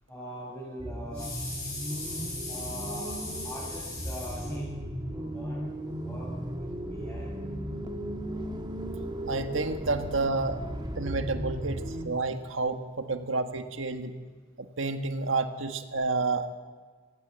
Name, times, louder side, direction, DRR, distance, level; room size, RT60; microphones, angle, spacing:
voice 1, 0.1-4.7 5.1-6.3 6.6-7.3, left 1 dB, 5° left, -8 dB, 7.9 m, -39 dB
sound 1, 0.8-12.1, equal, 20° right, 2.2 m, -36 dB
voice 2, 9.3-10.6 10.9-14.1 14.6-16.6, right 3 dB, 70° right, 7 dB, 1.6 m, -30 dB
25.5 x 19.0 x 8.0 m, 1.4 s
head